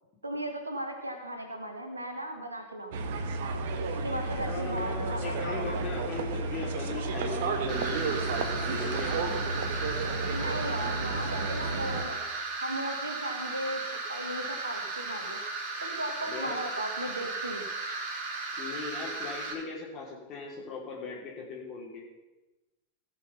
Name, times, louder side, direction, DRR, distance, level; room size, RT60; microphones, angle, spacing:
voice 1, 0.2-3.1 3.8-6.1 10.3-12.2 12.6-15.4 15.8-17.7, right 1 dB, 80° right, 4 dB, 1.6 m, -37 dB
sound 1, 2.9-12.0, right 3 dB, 55° right, 1.2 m, -32 dB
voice 2, 4.4-9.6 16.2-16.6 18.6-22.0, left 4 dB, 35° left, -3 dB, 3.0 m, -39 dB
sound 2, 7.7-19.5, right 3 dB, 35° right, 3.0 m, -36 dB
18.5 x 6.4 x 5.7 m, 1.1 s
figure-of-eight pair, 90°, 0 cm